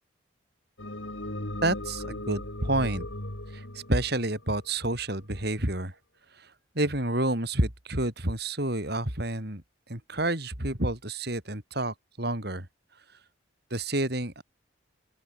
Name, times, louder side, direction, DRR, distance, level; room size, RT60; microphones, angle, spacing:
sound 1, 0.8-5.2, left 1 dB, 80° left, 5.4 m, -37 dB
voice 1, 1.6-3.1 3.5-5.9 6.3-9.6 9.9-12.7 13.7-14.4, right 1 dB, 55° right, 4.8 m, -29 dB
open air
head